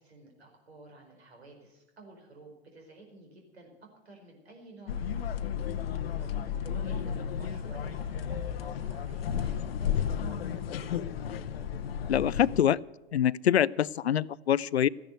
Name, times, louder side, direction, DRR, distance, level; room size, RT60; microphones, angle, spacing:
voice 1, 0.0-5.3 5.8-10.8, right 2 dB, 75° right, 2 dB, 4.9 m, -53 dB
sound 1, 4.9-12.6, left 8 dB, 65° left, 0.9 m, -33 dB
voice 2, 12.1-12.8 13.1-14.9, left 10 dB, 85° left, 22 dB, 0.5 m, -25 dB
14.0 x 10.5 x 7.9 m, 1.0 s
figure-of-eight pair, 105°, 31 cm